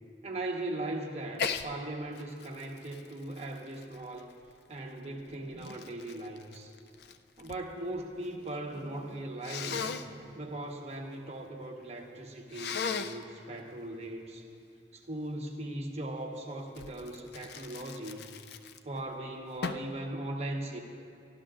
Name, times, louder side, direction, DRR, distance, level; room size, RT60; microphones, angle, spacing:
voice 1, 0.2-4.3 4.7-6.7 7.4-9.9 10.4-14.5 14.9-18.2 18.8-20.8, right 1 dB, 35° right, 0 dB, 1.2 m, -39 dB
Sneeze, 1.3-1.7 2.1-4.5 5.2-7.6 7.9-8.6 9.4-10.1 12.5-13.2 16.7-19.0 19.6-19.9, left 6 dB, 60° left, 0.4 m, -38 dB
sound 1, 5.1-6.1 6.8-9.3 9.6-10.7 11.0-11.1 11.3-11.7, right 1 dB, 75° right, 0.9 m, -51 dB
24.5 x 12.0 x 2.5 m, 2.5 s
head